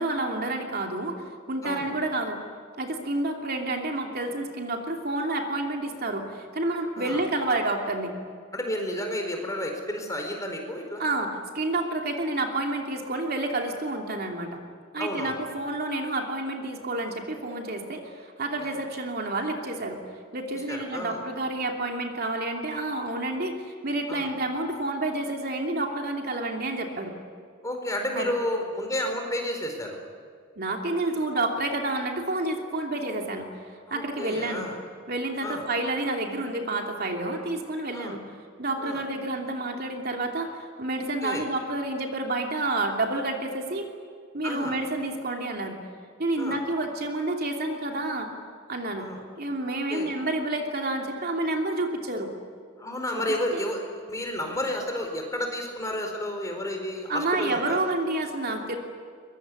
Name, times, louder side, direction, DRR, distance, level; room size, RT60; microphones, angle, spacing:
voice 1, 0.0-2.4 2.8-8.1 11.0-14.6 14.9-20.0 20.3-27.1 28.1-28.3 30.6-34.7 35.1-38.2 38.6-43.9 44.3-45.8 46.2-48.3 48.7-49.1 49.4-52.3 53.1-53.2 53.5-53.6 57.1-58.8, right 2 dB, 45° right, 2 dB, 2.9 m, -29 dB
voice 2, 8.5-11.0 15.0-15.4 18.6-18.7 20.7-21.2 24.1-24.3 27.6-30.0 33.9-34.8 35.4-35.6 37.9-38.2 38.8-39.0 41.2-41.5 44.4-44.8 46.4-46.6 48.9-49.2 49.9-50.1 52.8-57.8, left 1 dB, 15° left, 3 dB, 4.5 m, -31 dB
23.5 x 22.5 x 9.7 m, 2.1 s
head